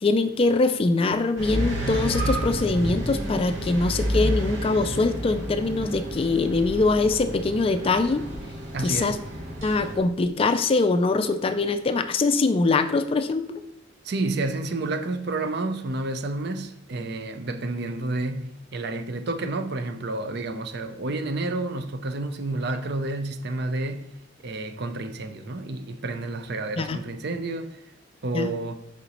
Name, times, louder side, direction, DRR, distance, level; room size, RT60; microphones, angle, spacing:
voice 1, 0.0-8.3 8.8-9.2 9.6-13.6 26.8-27.0 28.3-28.5, left 3 dB, 30° left, 0.3 m, -23 dB
sound 1, 1.4-10.0, right 1 dB, 85° right, 1.9 m, -30 dB
voice 2, 8.7-9.2 14.0-24.1 24.4-27.8 28.2-28.7, right 2 dB, 55° right, 0.5 m, -30 dB
6.7 x 5.0 x 2.9 m
head